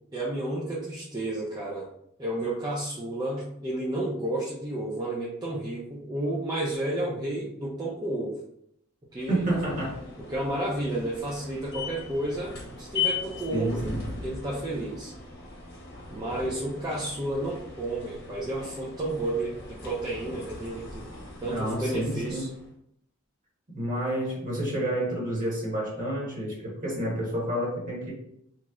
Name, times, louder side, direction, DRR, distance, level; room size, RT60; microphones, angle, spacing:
voice 1, 0.1-1.9 2.2-8.4 9.1-9.4 10.3-13.9 14.2-15.1 16.1-21.0 21.4-22.5, right 1 dB, 20° right, -5 dB, 0.5 m, -31 dB
sound 1, 9.2-22.7, left 5 dB, 50° left, 0.9 m, -39 dB
voice 2, 9.3-10.0 13.5-14.0 21.4-22.5 23.7-28.1, right 1 dB, 40° right, -4 dB, 1.3 m, -29 dB
3.0 x 2.1 x 3.6 m, 0.74 s
head